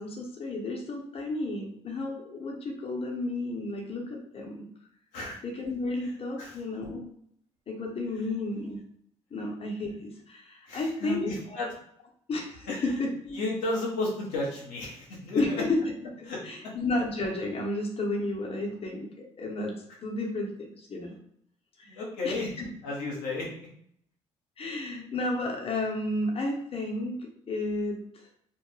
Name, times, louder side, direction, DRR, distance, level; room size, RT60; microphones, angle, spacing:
voice 1, 0.0-4.6 5.4-7.0 7.7-8.8 9.3-11.3 12.3-13.4 15.3-15.8 16.2-19.8 20.0-21.2 21.8-22.7 24.6-28.3, left 2 dB, 40° left, 0 dB, 0.8 m, -32 dB
voice 2, 10.7-11.7 12.7-13.0 13.3-15.5 16.2-16.7 21.9-22.5 22.8-23.5, left 2 dB, 80° left, -3 dB, 0.7 m, -33 dB
2.2 x 2.0 x 3.1 m, 0.69 s
hypercardioid pair, 55°, 15 cm